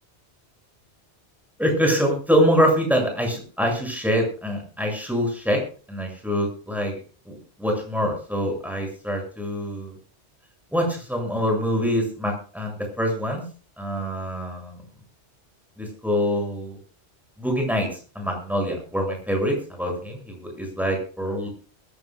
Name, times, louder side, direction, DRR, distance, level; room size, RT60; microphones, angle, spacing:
voice 1, 1.6-5.6 5.9-6.9 7.3-9.9 10.7-13.4 13.8-14.8 15.8-16.8 17.4-17.9 18.2-21.5, equal, ahead, 1 dB, 7.3 m, -25 dB
21.5 x 15.5 x 2.4 m, 0.38 s
omnidirectional pair, 1.2 m